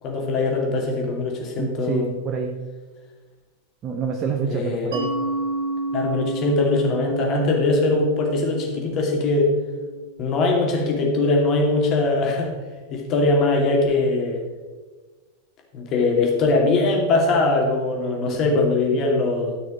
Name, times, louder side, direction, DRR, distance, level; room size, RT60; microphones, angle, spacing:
voice 1, 0.0-2.1 4.5-4.9 5.9-9.5 10.2-12.5 12.9-14.4 15.7-19.6, left 2 dB, 35° left, 0 dB, 2.6 m, -21 dB
voice 2, 1.6-2.6 3.8-5.1 18.2-18.4, right 6 dB, 30° right, 3 dB, 0.9 m, -27 dB
Mallet percussion, 4.9-10.3, right 2 dB, 60° right, 2.3 m, -30 dB
13.0 x 6.1 x 5.1 m, 1.4 s
figure-of-eight pair, 90°, 0 cm